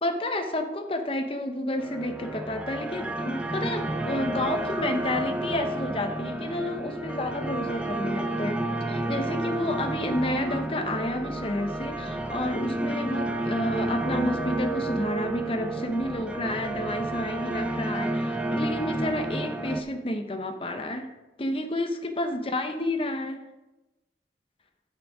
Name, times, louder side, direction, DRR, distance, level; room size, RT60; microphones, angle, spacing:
voice 1, 0.0-21.1 21.4-23.4, left 1 dB, 30° left, 5 dB, 0.8 m, -30 dB
sound 1, 1.8-19.8, right 1 dB, 5° right, 0.5 m, -31 dB
sound 2, 3.9-17.6, right 1 dB, 60° right, 2.9 m, -38 dB
9.6 x 6.2 x 4.8 m, 1.0 s
head